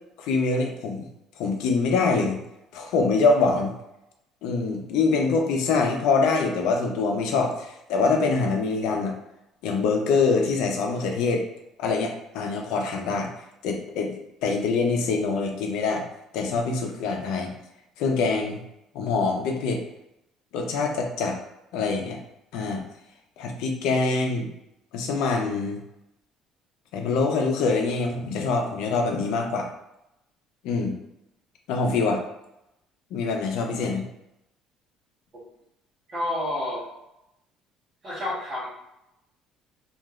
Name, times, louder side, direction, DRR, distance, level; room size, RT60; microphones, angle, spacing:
voice 1, 0.2-1.1 1.4-2.4 2.7-3.7 4.4-9.1 9.6-11.4 11.8-13.3 13.6-14.1 14.4-16.0 16.3-17.5 18.0-18.6 18.9-19.8 20.5-21.4 21.7-22.2 22.5-22.8 23.4-24.5 24.9-25.8 26.9-29.7 30.6-30.9 31.7-32.2 33.1-34.1, left 4 dB, 80° left, 2 dB, 0.6 m, -24 dB
voice 2, 36.1-36.9 38.0-38.7, left 1 dB, 30° right, -10 dB, 1.0 m, -29 dB
3.0 x 2.5 x 2.4 m, 0.86 s
cardioid pair, 135°, 0 cm